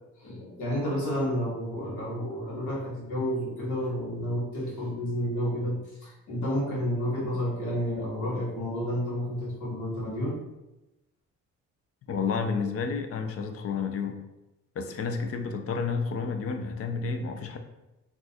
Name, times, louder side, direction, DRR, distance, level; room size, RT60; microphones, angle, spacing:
voice 1, 0.2-10.4, equal, 80° left, -4 dB, 1.2 m, -30 dB
voice 2, 12.1-14.2 14.8-17.6, left 5 dB, 50° left, 6 dB, 0.5 m, -30 dB
2.4 x 2.4 x 4.0 m, 0.97 s
cardioid pair, 90°, 30 cm